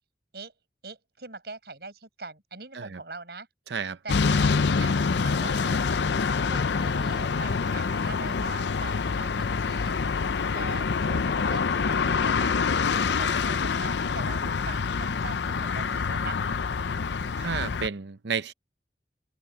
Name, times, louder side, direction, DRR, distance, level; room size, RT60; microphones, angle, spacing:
voice 1, 0.8-3.5 3.8-5.8 6.4-10.2 10.5-12.7 13.1-16.4, right 3 dB, 65° right, 5.7 m, -42 dB
voice 2, 3.7-4.0 17.4-18.5, right 5 dB, 85° right, 0.7 m, -31 dB
sound 1, 4.1-17.9, left 5 dB, 85° left, 0.6 m, -26 dB
head